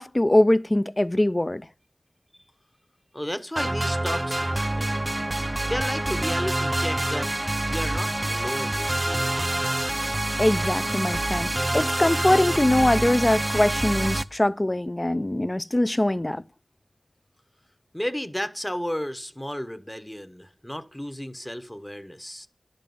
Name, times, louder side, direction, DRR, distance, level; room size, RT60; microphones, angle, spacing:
voice 1, 0.0-1.7 10.4-16.4, left 1 dB, 25° left, 0.4 m, -22 dB
voice 2, 3.1-5.0 5.7-7.3 7.6-9.9 17.9-22.5, equal, 10° left, 0.8 m, -33 dB
sound 1, 3.6-14.2, right 1 dB, 30° right, 0.5 m, -26 dB
11.0 x 5.3 x 7.6 m
wide cardioid pair, 55°, 0 cm